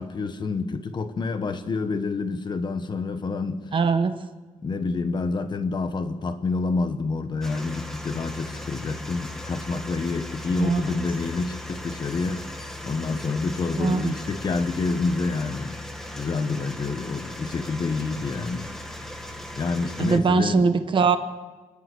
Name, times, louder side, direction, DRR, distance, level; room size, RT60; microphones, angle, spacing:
voice 1, 0.0-3.6 4.6-12.5 12.8-15.8 16.2-18.7 19.6-20.8, left 4 dB, 35° left, 9 dB, 1.2 m, -28 dB
voice 2, 3.7-4.1 10.6-11.0 13.8-14.1 20.0-21.2, right 5 dB, 40° right, 9 dB, 1.0 m, -22 dB
sound 1, 7.4-20.2, left 1 dB, 5° left, 1.5 m, -37 dB
28.5 x 11.0 x 8.4 m, 1.3 s
wide cardioid pair, 175°, 13 cm